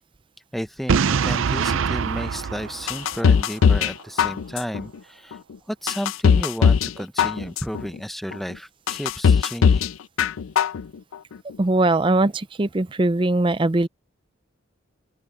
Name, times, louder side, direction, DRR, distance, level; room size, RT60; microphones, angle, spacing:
voice 1, 0.5-5.4 5.7-9.9, equal, ahead, 0.8 m, -32 dB
Boom, 0.9-3.8, right 6 dB, 80° right, 0.5 m, -24 dB
sound 1, 2.9-3.9 4.2-4.8 5.3-5.4 5.9-6.9 7.2-7.8 8.3-8.4 8.9-9.9 10.2-10.8 11.1-11.2, left 6 dB, 85° left, 0.4 m, -18 dB
voice 2, 11.6-13.9, right 2 dB, 25° right, 0.5 m, -20 dB
open air
head